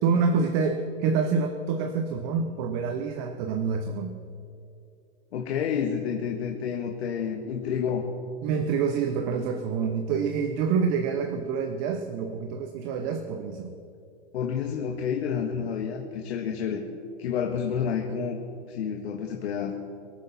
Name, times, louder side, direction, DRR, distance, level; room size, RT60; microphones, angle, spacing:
voice 1, 0.0-4.2 8.4-13.7 16.6-16.8, right 5 dB, 35° right, 6 dB, 0.9 m, -27 dB
voice 2, 5.3-8.1 14.3-16.8 17.2-18.4 18.7-19.7, left 7 dB, 70° left, 2 dB, 1.7 m, -29 dB
24.0 x 9.8 x 4.2 m, 2.5 s
hypercardioid pair, 145°, 33 cm